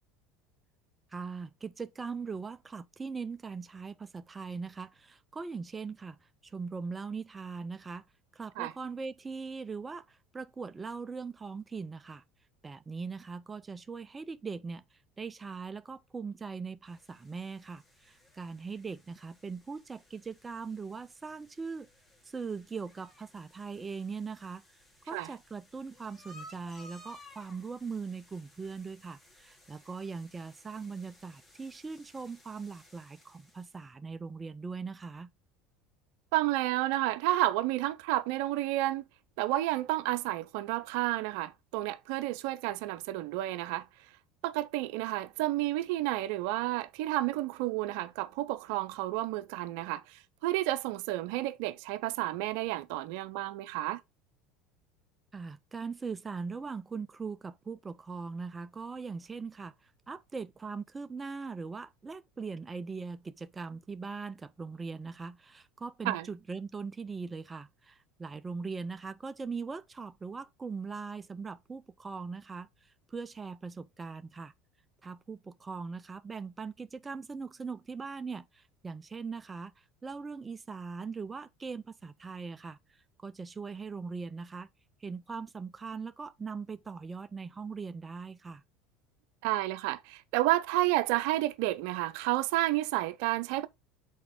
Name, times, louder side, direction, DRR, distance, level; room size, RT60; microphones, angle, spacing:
voice 1, 1.1-8.0 8.3-12.2 12.6-14.8 15.2-21.9 22.2-24.6 25.1-35.3 55.3-74.5 75.0-84.7 85.0-88.6, right 5 dB, 20° right, 0.5 m, -40 dB
sound 1, 16.8-33.8, equal, 20° left, 2.7 m, -58 dB
voice 2, 36.3-39.0 39.4-43.9 44.4-54.0 66.0-66.3 89.4-93.7, right 16 dB, 70° right, 0.6 m, -31 dB
6.3 x 4.4 x 3.7 m
supercardioid pair, 95°, 0 cm